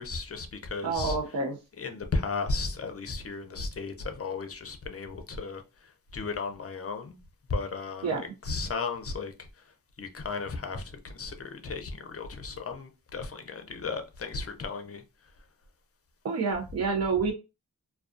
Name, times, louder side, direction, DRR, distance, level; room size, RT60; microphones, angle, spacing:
voice 1, 0.0-1.2 1.8-7.2 7.5-9.3 10.0-15.0, left 4 dB, 40° left, 0.5 m, -35 dB
voice 2, 0.8-1.6 8.0-8.2 16.2-17.3, right 4 dB, 45° right, 0.5 m, -28 dB
2.3 x 2.3 x 2.4 m
wide cardioid pair, 70°, 36 cm